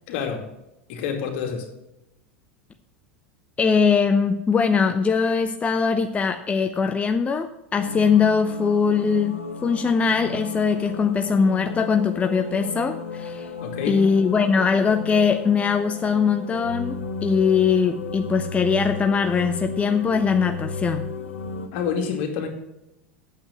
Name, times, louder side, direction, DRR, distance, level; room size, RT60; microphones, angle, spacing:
voice 1, 0.1-0.5 0.9-1.7 13.6-14.0 21.7-22.5, left 6 dB, 55° left, 4 dB, 2.3 m, -27 dB
voice 2, 3.6-13.5 13.9-21.1, left 5 dB, 20° left, 7 dB, 0.7 m, -21 dB
sound 1, 7.8-21.7, left 3 dB, 80° left, 1.1 m, -34 dB
8.8 x 7.8 x 7.2 m, 0.90 s
figure-of-eight pair, 85°, 7 cm